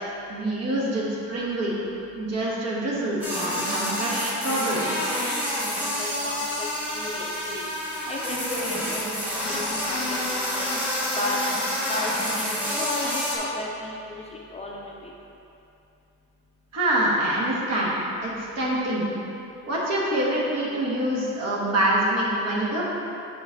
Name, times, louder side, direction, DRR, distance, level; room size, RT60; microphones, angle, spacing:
voice 1, 0.3-1.8 2.2-5.1 16.7-17.9 18.2-19.1 19.6-22.8, right 1 dB, 55° right, -5 dB, 1.5 m, -25 dB
sound 1, 3.2-13.4, left 1 dB, 5° right, 1.4 m, -28 dB
voice 2, 6.0-7.7 8.1-9.0 9.5-10.2 10.5-10.7 11.2-11.4 11.9-12.4 12.8-15.1, left 2 dB, 20° left, -3 dB, 0.5 m, -34 dB
6.9 x 5.0 x 3.9 m, 2.8 s
cardioid pair, 145°, 32 cm